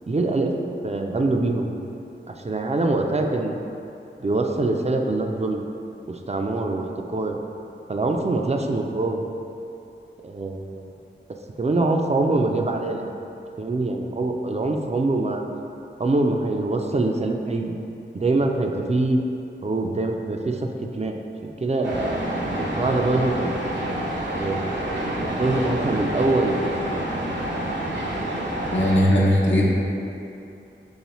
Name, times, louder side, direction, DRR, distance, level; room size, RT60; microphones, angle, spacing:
voice 1, 0.1-0.6 0.8-1.7 2.3-3.6 4.2-5.6 6.1-7.4 7.9-9.2 10.2-10.8 11.6-13.1 13.6-15.4 16.0-17.7 18.1-19.2 19.6-21.2 21.6-22.2 22.6-23.5 24.3-24.8 25.2-26.7, right 2 dB, 35° right, 3 dB, 0.4 m, -24 dB
sound 1, 21.8-29.0, right 1 dB, 65° right, 0.8 m, -28 dB
voice 2, 28.7-29.6, equal, 70° left, -6 dB, 0.8 m, -18 dB
5.5 x 3.1 x 3.0 m, 2.8 s
wide cardioid pair, 45°, 20 cm